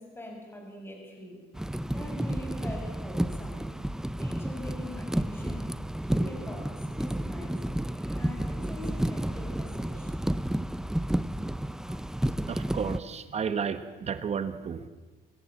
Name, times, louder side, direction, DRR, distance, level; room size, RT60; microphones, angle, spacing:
voice 1, 0.0-1.4 1.9-3.7 4.1-5.7 6.1-10.2, equal, 15° left, 1 dB, 6.8 m, -43 dB
sound 1, 1.5-13.0, right 1 dB, 5° right, 0.6 m, -31 dB
voice 2, 12.5-14.8, right 6 dB, 40° right, 12 dB, 1.3 m, -32 dB
26.0 x 16.5 x 7.4 m, 1.4 s
cardioid pair, 110°, 17 cm